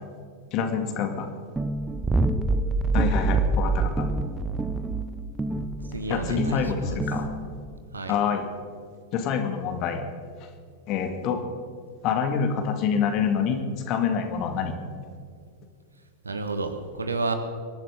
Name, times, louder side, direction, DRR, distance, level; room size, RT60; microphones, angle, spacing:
voice 1, 0.5-1.3 2.9-4.1 6.1-7.3 8.1-8.5 9.1-10.0 10.9-11.4 12.0-13.6 13.9-14.7, left 7 dB, 40° left, 6 dB, 1.9 m, -26 dB
sound 1, 1.6-7.7, right 2 dB, 10° right, 0.8 m, -26 dB
voice 2, 5.9-7.0 7.9-8.1 16.2-17.3, right 3 dB, 75° right, 7 dB, 1.5 m, -30 dB
25.5 x 11.5 x 3.8 m, 2.1 s
figure-of-eight pair, 90°, 0 cm